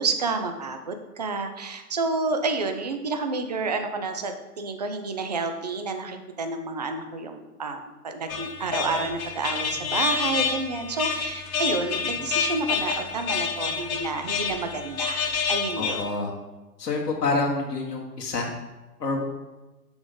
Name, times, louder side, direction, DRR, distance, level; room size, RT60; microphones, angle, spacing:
voice 1, 0.0-15.2 15.5-16.0, right 3 dB, 30° right, 7 dB, 0.4 m, -29 dB
sound 1, 8.3-16.0, left 6 dB, 60° left, 1.0 m, -28 dB
voice 2, 15.7-16.3 16.8-18.5 19.0-19.2, left 3 dB, 80° left, -1 dB, 1.5 m, -27 dB
6.1 x 3.7 x 5.0 m, 1.1 s
figure-of-eight pair, 120°, 47 cm